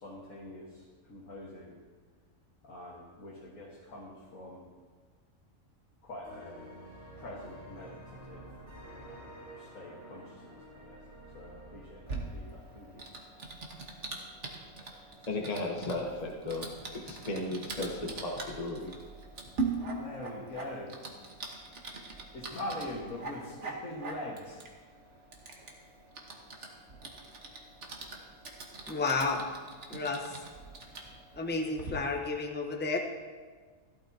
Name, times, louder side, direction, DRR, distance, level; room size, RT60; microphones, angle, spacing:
voice 1, 0.0-1.8 2.6-4.7 6.0-6.7 7.2-8.5 9.6-11.0 11.3-13.1 19.9-21.0 22.3-24.6, left 1 dB, 75° left, -5 dB, 2.0 m, -43 dB
sound 1, 6.2-13.9, right 1 dB, 75° right, 3.8 m, -50 dB
Typing, 12.1-31.9, right 3 dB, 55° right, 1.6 m, -42 dB
voice 2, 14.8-18.9, left 2 dB, 30° left, -1 dB, 1.2 m, -36 dB
voice 3, 28.9-29.5 29.9-30.4 31.3-33.0, left 3 dB, 10° left, 2 dB, 0.7 m, -32 dB
15.0 x 12.5 x 2.8 m, 1.5 s
omnidirectional pair, 1.5 m